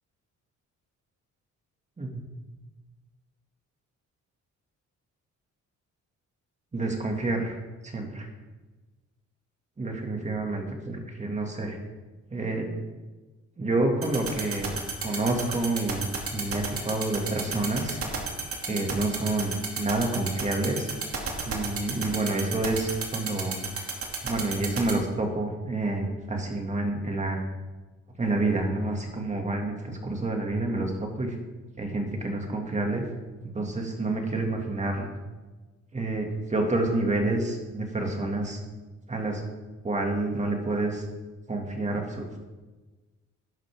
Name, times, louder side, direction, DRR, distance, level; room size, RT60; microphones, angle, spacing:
voice 1, 6.7-7.6 7.8-8.3 9.8-11.8 12.3-12.7 13.6-14.7 15.0-18.0 18.6-20.9 21.4-23.6 24.2-27.4 28.2-31.4 31.8-33.0 33.4-35.1 35.9-38.6 39.1-39.4 39.8-41.0 41.5-42.4, right 2 dB, 25° right, 2 dB, 2.2 m, -28 dB
sound 1, 14.0-24.9, right 6 dB, 50° right, 2.5 m, -30 dB
11.5 x 11.0 x 3.6 m, 1.3 s
cardioid pair, 105°, 30 cm